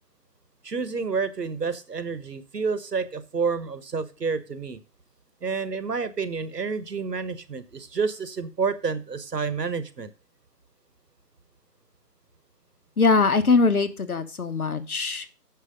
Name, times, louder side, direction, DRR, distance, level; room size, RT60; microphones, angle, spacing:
voice 1, 0.6-4.8 5.4-10.1, right 5 dB, 70° right, 13 dB, 1.3 m, -29 dB
voice 2, 13.0-15.3, left 4 dB, 60° left, 10 dB, 1.2 m, -22 dB
7.6 x 5.9 x 6.4 m, 0.34 s
figure-of-eight pair, 175°, 50 cm